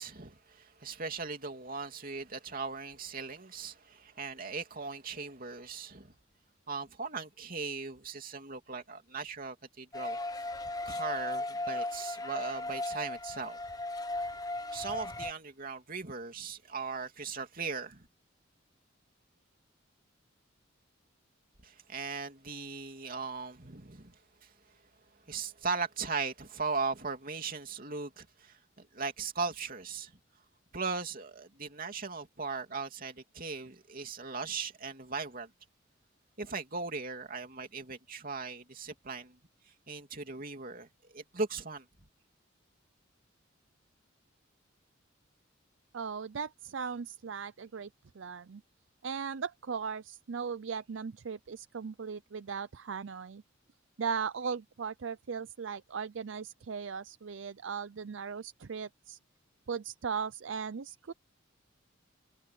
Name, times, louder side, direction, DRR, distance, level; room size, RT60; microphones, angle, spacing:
voice 1, 0.0-6.1 6.7-10.2 10.8-13.6 14.7-18.1 21.6-24.5 25.3-30.1 30.7-35.5 36.4-39.4 39.9-41.8, right 4 dB, 45° right, 3.0 m, -38 dB
sound 1, 9.9-15.3, left 2 dB, 20° left, 0.9 m, -36 dB
voice 2, 45.9-47.9 48.1-48.6 49.0-53.4 54.0-59.2 59.7-61.1, right 6 dB, 65° right, 0.5 m, -38 dB
head